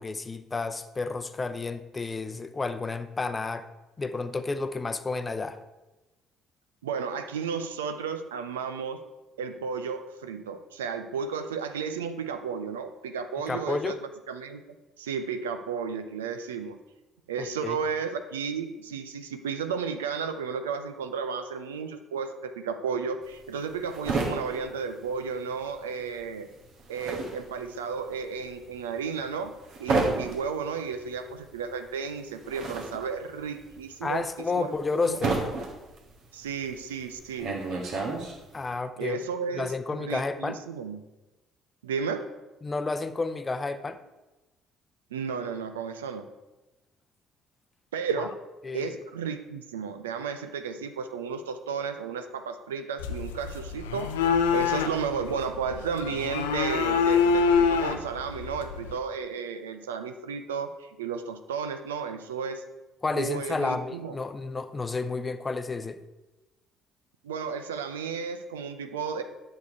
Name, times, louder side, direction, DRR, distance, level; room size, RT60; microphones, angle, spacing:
voice 1, 0.0-3.7 4.0-5.6 13.5-13.9 17.4-17.8 34.0-35.3 38.5-39.2 39.5-40.6 42.6-44.0 48.6-48.9 63.0-66.0, left 3 dB, 25° left, 10 dB, 0.7 m, -31 dB
voice 2, 6.8-9.0 9.4-14.0 14.3-14.6 15.0-16.8 17.3-26.5 26.9-29.5 29.8-34.7 35.0-35.2 36.3-37.6 39.0-41.1 41.8-42.3 45.1-46.3 47.9-48.3 48.7-62.6 63.1-64.2 67.2-69.2, right 6 dB, 75° right, 9 dB, 0.6 m, -33 dB
sound 1, 23.2-25.8 26.0-38.7, right 3 dB, 55° right, 1.5 m, -32 dB
sound 2, 53.0-59.0, left 6 dB, 70° left, 0.6 m, -26 dB
10.5 x 6.7 x 4.5 m, 1.1 s
figure-of-eight pair, 50°, 0 cm